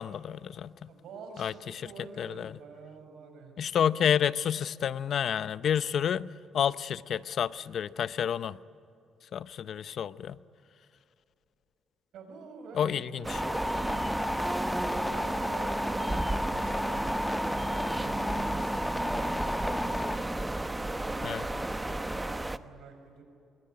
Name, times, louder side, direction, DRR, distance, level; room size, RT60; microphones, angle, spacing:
voice 1, 0.0-0.9 1.4-1.8 2.2-2.6 3.6-8.6 9.3-10.4 12.7-13.4 21.2-21.4, left 8 dB, 60° left, 17 dB, 0.7 m, -30 dB
voice 2, 0.9-3.7 12.1-14.1 14.9-23.2, right 4 dB, 80° right, 5 dB, 6.0 m, -47 dB
sound 1, 13.2-22.6, right 2 dB, 15° right, 1.0 m, -33 dB
sound 2, 13.3-20.1, left 1 dB, 10° left, 1.5 m, -34 dB
26.0 x 22.5 x 9.7 m, 2.7 s
cardioid pair, 90°, 0 cm